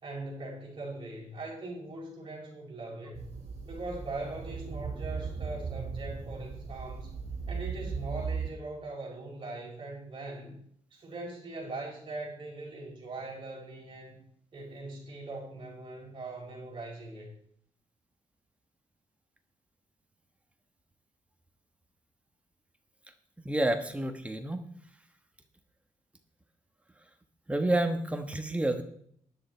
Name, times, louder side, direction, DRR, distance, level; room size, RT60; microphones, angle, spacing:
voice 1, 0.0-3.2 3.7-7.1 7.5-10.6 10.9-14.2 14.5-17.3, right 2 dB, 40° right, -2 dB, 5.4 m, -41 dB
sound 1, 3.1-8.5, right 5 dB, 55° right, 3.6 m, -37 dB
voice 2, 23.4-24.6 27.5-28.8, right 1 dB, 10° right, 6 dB, 1.4 m, -29 dB
12.5 x 10.5 x 4.5 m, 0.65 s
wide cardioid pair, 140°, 13 cm